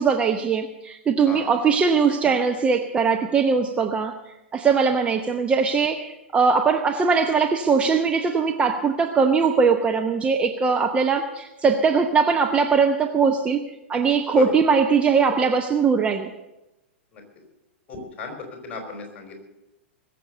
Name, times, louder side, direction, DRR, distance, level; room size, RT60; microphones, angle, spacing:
voice 1, 0.0-4.1 4.5-13.6 13.9-16.3, right 5 dB, 15° right, 4 dB, 0.8 m, -21 dB
voice 2, 17.9-18.3 18.6-19.4, left 5 dB, 20° left, 2 dB, 4.6 m, -34 dB
21.0 x 7.7 x 6.7 m, 0.96 s
figure-of-eight pair, 100°, 7 cm